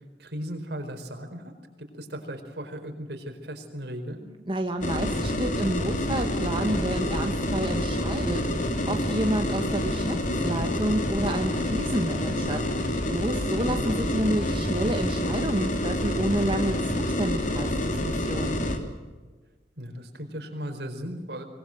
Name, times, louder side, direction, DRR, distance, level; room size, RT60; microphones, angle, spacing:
voice 1, 0.2-1.5 1.8-4.2 13.5-14.0 19.8-21.5, equal, 65° right, 6 dB, 4.6 m, -37 dB
voice 2, 4.4-18.6, right 1 dB, 30° right, 4 dB, 1.5 m, -30 dB
sound 1, 4.8-18.8, left 1 dB, 45° left, 3.2 m, -27 dB
24.0 x 22.0 x 7.9 m, 1.3 s
head